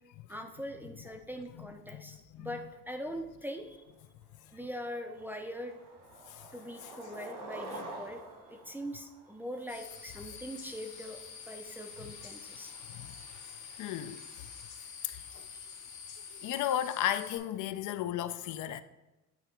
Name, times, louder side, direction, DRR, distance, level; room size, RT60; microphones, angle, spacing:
voice 1, 0.3-3.8 4.5-5.8 6.5-8.2 8.5-11.2 11.5-12.7 15.5-15.7, equal, 5° right, 0.4 m, -42 dB
voice 2, 1.0-2.7 6.3-6.5 6.8-7.1 10.2-10.3 12.0-12.3 12.9-13.1 13.8-14.5 15.0-15.5 16.4-18.8, left 11 dB, 65° left, 0.4 m, -36 dB
Skateboard, 4.0-4.1 4.5-4.8 5.1-9.8, right 1 dB, 70° right, 1.6 m, -46 dB
sound 1, 9.7-17.4, left 6 dB, 90° left, 1.4 m, -47 dB
8.4 x 2.9 x 4.4 m
cardioid pair, 140°, 33 cm